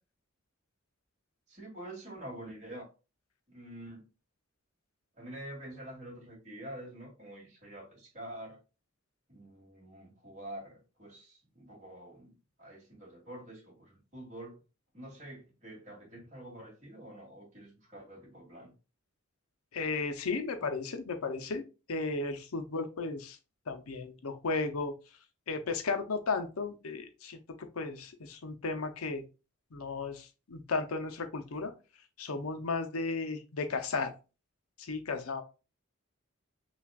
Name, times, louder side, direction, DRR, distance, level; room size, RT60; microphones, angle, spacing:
voice 1, 1.5-2.9 3.5-4.0 5.2-8.6 9.3-12.3 12.6-14.6 14.9-18.7, right 1 dB, 35° right, -3 dB, 1.8 m, -47 dB
voice 2, 19.7-21.6 21.9-23.4 23.7-24.9 25.5-27.4 27.8-29.2 29.7-31.7 32.2-34.1 34.8-35.4, left 4 dB, 85° left, 7 dB, 0.7 m, -34 dB
5.8 x 2.4 x 2.4 m, 0.31 s
head